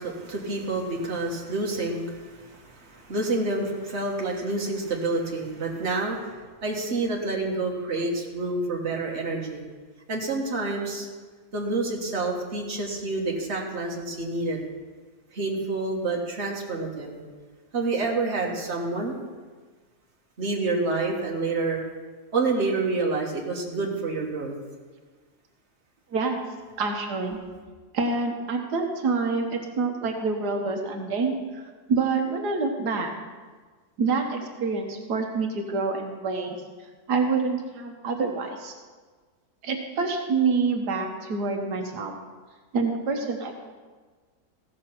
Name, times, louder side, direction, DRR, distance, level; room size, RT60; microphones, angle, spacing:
voice 1, 0.0-9.6 10.1-11.1 11.5-14.6 15.3-17.2 17.7-19.2 20.4-21.8 22.3-24.5, right 3 dB, 45° right, -1 dB, 1.8 m, -28 dB
voice 2, 26.8-27.4 27.9-31.6 31.9-33.1 34.0-36.6 37.1-38.7 39.6-42.1 42.7-43.5, right 4 dB, 85° right, 3 dB, 1.7 m, -27 dB
15.0 x 6.6 x 5.8 m, 1.4 s
omnidirectional pair, 1.7 m